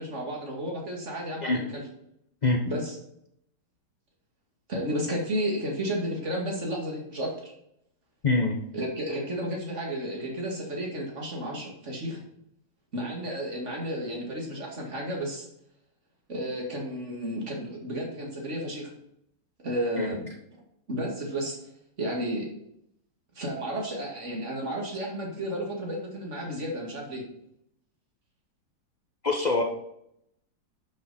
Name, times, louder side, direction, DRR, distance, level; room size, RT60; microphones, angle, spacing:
voice 1, 0.0-1.8 2.6-3.0 4.7-7.5 8.7-12.2 12.9-15.5 16.3-18.9 19.6-20.3 20.9-21.6 22.0-22.5 23.3-27.2, equal, 35° right, -1 dB, 2.5 m, -32 dB
voice 2, 8.2-8.6 20.0-20.1 29.2-29.6, left 3 dB, 75° left, 3 dB, 0.4 m, -24 dB
11.5 x 6.5 x 4.2 m, 0.76 s
omnidirectional pair, 2.1 m